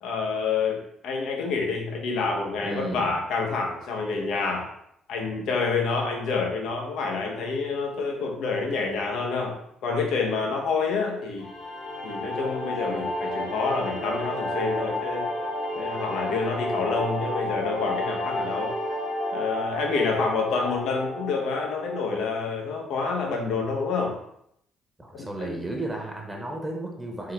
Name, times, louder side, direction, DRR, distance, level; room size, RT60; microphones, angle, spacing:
voice 1, 0.0-4.7 5.1-9.6 9.8-11.5 12.0-15.3 15.7-18.7 19.3-24.2 25.1-25.6, left 4 dB, 60° left, 1 dB, 0.8 m, -28 dB
voice 2, 2.6-3.1 25.0-27.3, right 2 dB, 15° right, 1 dB, 1.0 m, -33 dB
sound 1, 11.4-22.4, left 1 dB, 85° left, 1.4 m, -31 dB
4.5 x 3.8 x 3.2 m, 0.73 s
figure-of-eight pair, 45°, 0 cm